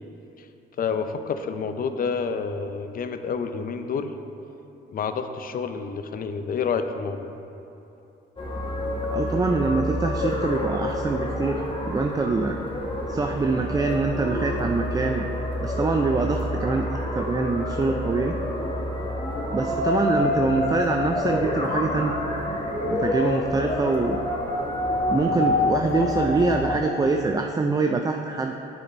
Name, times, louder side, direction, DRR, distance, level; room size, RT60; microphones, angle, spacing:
voice 1, 0.8-4.1 4.9-7.4, left 5 dB, 45° left, 8 dB, 0.5 m, -29 dB
sound 1, 8.4-26.8, left 1 dB, 25° left, 1.1 m, -27 dB
voice 2, 9.1-12.6 13.1-15.3 15.6-16.9 17.1-18.3 19.5-22.1 22.8-24.2 25.1-28.5, right 3 dB, 20° right, 4 dB, 0.3 m, -24 dB
9.7 x 4.2 x 4.3 m, 2.9 s
cardioid pair, 90°, 20 cm